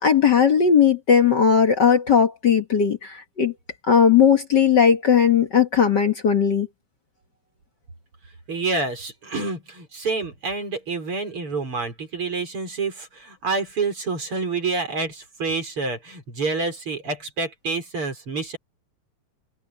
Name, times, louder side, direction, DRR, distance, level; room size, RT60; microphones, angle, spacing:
voice 1, 0.0-3.5 3.9-6.7, left 7 dB, 50° left, 1.3 m, -17 dB
voice 2, 8.5-18.6, right 4 dB, 40° right, 5.6 m, -28 dB
open air
omnidirectional pair, 3.8 m